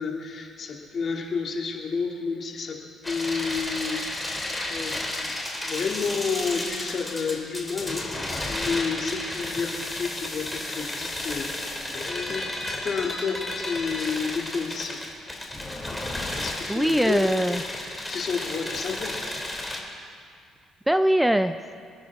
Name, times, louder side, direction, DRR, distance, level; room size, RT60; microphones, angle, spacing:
voice 1, 0.0-2.7 3.0-5.3 5.6-12.5 12.8-15.0 16.3-17.3 18.1-19.3, left 5 dB, 50° left, 0 dB, 2.7 m, -30 dB
sound 1, 3.0-19.8, left 1 dB, 10° left, 2.9 m, -33 dB
voice 2, 16.7-17.6 20.9-21.8, right 1 dB, 5° right, 10 dB, 0.5 m, -22 dB
26.5 x 9.9 x 3.7 m, 2.2 s
supercardioid pair, 80°, 0 cm